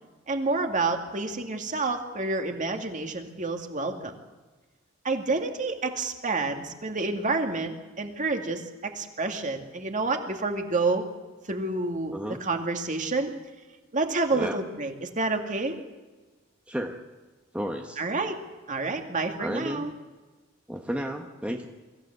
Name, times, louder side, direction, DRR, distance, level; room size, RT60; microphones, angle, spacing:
voice 1, 0.3-4.1 5.0-11.0 11.5-13.3 13.9-15.8 18.0-18.4 18.7-19.9, right 3 dB, 40° right, 4 dB, 2.3 m, -29 dB
voice 2, 16.7-17.2 17.5-18.0 19.4-19.9 20.7-21.7, equal, 5° right, 3 dB, 1.2 m, -32 dB
23.5 x 15.5 x 8.1 m, 1.3 s
head